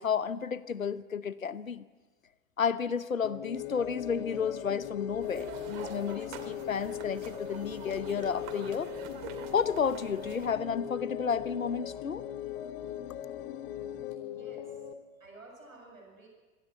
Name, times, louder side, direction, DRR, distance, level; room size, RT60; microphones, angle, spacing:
voice 1, 0.0-1.9 2.6-8.9 9.5-12.2, left 6 dB, 80° left, 17 dB, 0.9 m, -32 dB
sound 1, 3.2-14.9, left 10 dB, 50° left, 1.8 m, -40 dB
sound 2, 3.5-14.2, left 16 dB, 30° left, 0.7 m, -49 dB
sound 3, 5.2-10.5, right 8 dB, 45° right, 2.6 m, -46 dB
voice 2, 14.2-14.8 15.2-16.3, right 2 dB, 80° right, 1 dB, 7.5 m, -52 dB
25.5 x 18.0 x 8.1 m, 1.3 s
figure-of-eight pair, 85°, 40 cm